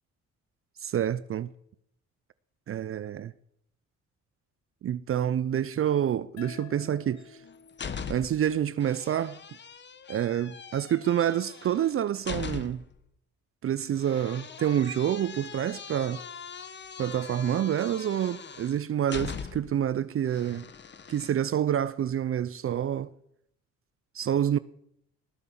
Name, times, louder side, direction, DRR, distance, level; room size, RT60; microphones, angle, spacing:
voice 1, 0.8-1.5 2.7-3.3 4.8-7.4 8.1-9.4 10.1-12.8 13.6-16.2 17.0-20.7 21.1-23.1 24.1-24.6, right 10 dB, 45° right, 0.5 m, -28 dB
sound 1, 6.4-9.6, left 7 dB, 55° left, 0.7 m, -51 dB
sound 2, 7.2-8.5 8.8-13.0 14.0-19.8 20.3-21.3, left 6 dB, 35° left, 1.1 m, -41 dB
19.5 x 6.7 x 7.3 m
cardioid pair, 90°, 30 cm